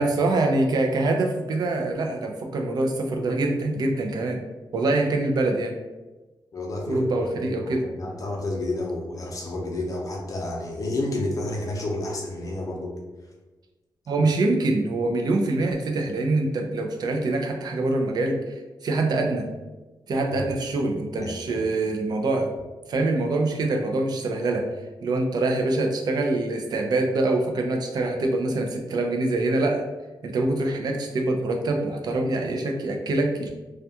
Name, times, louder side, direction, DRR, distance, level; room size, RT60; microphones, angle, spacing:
voice 1, 0.0-4.4 4.7-5.8 6.9-7.8 14.1-18.5 18.8-19.5 20.1-22.5 22.9-24.7 25.0-29.8 30.2-33.5, right 2 dB, 60° right, 3 dB, 0.4 m, -24 dB
voice 2, 6.5-12.9 20.3-20.4 21.1-21.6, left 2 dB, 45° left, -1 dB, 0.6 m, -30 dB
2.3 x 2.2 x 2.7 m, 1.2 s
wide cardioid pair, 120°, 8 cm